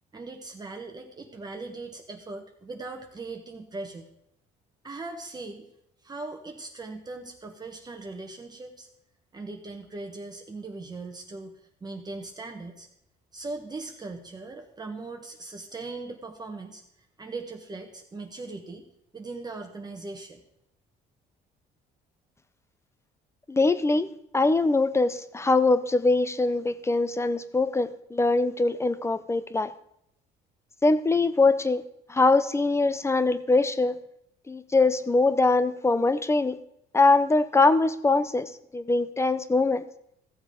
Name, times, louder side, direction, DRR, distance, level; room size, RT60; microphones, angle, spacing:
voice 1, 0.1-4.0 4.8-5.7 6.0-8.9 9.3-12.9 13.3-16.8 17.2-18.8 19.1-20.4, right 3 dB, 25° right, 4 dB, 1.2 m, -39 dB
voice 2, 23.5-29.7 30.8-31.8 32.1-34.0 34.5-36.6 36.9-39.8, left 3 dB, 15° left, 14 dB, 0.6 m, -23 dB
14.5 x 7.3 x 5.2 m, 0.76 s
cardioid pair, 110°, 17 cm